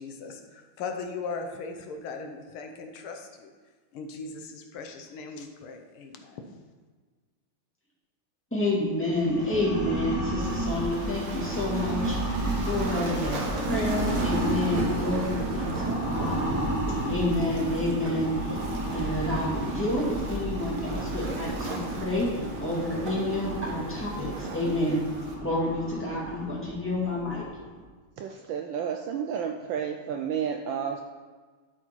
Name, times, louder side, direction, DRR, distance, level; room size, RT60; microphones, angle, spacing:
voice 1, 0.0-3.5 3.9-6.5, left 4 dB, 75° left, 4 dB, 1.6 m, -38 dB
voice 2, 8.5-12.2 12.6-16.5 17.1-18.6 18.9-25.1 25.4-27.5, left 1 dB, 5° left, -7 dB, 1.9 m, -29 dB
sound 1, 9.1-27.8, right 1 dB, 15° right, 0.8 m, -32 dB
Waves surf, 10.4-25.3, right 3 dB, 55° right, 1.4 m, -39 dB
voice 3, 28.2-31.0, right 7 dB, 75° right, 4 dB, 1.1 m, -31 dB
12.5 x 4.2 x 4.4 m, 1.4 s
omnidirectional pair, 2.4 m